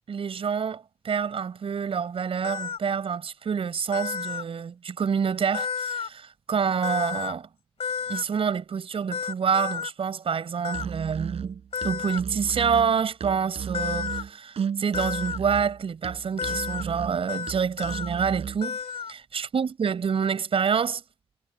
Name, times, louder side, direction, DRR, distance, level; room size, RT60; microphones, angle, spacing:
voice 1, 0.1-7.5 8.1-18.8 19.1-21.0, right 6 dB, 70° right, 4.8 m, -27 dB
sound 1, 2.4-2.8 3.9-4.4 5.5-6.1 6.8-7.3 7.8-8.2 9.1-9.9 10.6-10.9 11.7-12.2 13.7-14.2 14.9-15.4 16.4-16.8 17.3-17.5 17.8-18.1 18.6-19.1, left 6 dB, 80° left, 2.8 m, -31 dB
Musical instrument, 10.7-18.6, right 7 dB, 85° right, 4.1 m, -35 dB
wide cardioid pair, 130°, 10 cm